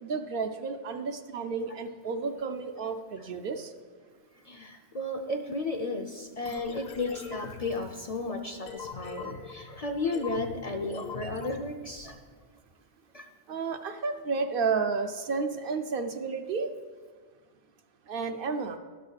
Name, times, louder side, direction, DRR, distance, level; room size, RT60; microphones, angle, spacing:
voice 1, 0.0-3.7 13.5-16.7 18.1-18.8, right 4 dB, 65° right, 7 dB, 0.7 m, -31 dB
voice 2, 4.5-12.2 13.1-13.3, left 2 dB, 45° left, 4 dB, 0.5 m, -34 dB
sound 1, 6.4-12.2, left 5 dB, 70° left, 1.2 m, -43 dB
12.0 x 4.0 x 6.3 m, 1.5 s
omnidirectional pair, 1.1 m